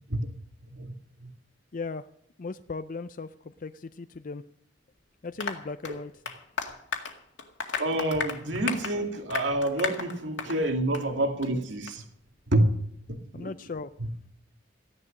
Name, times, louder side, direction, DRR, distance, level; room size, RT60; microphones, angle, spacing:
voice 1, 1.7-2.1 2.4-4.4 5.2-6.1 13.3-13.9, left 4 dB, 45° left, 0.5 m, -37 dB
Applause, 5.4-10.6 10.9-11.1 11.4-11.5 11.9-12.0, left 5 dB, 90° left, 2.0 m, -35 dB
voice 2, 7.8-12.0 12.5-12.7 13.1-13.5 14.0-14.1, right 1 dB, 85° right, 2.2 m, -28 dB
15.5 x 11.0 x 6.5 m
head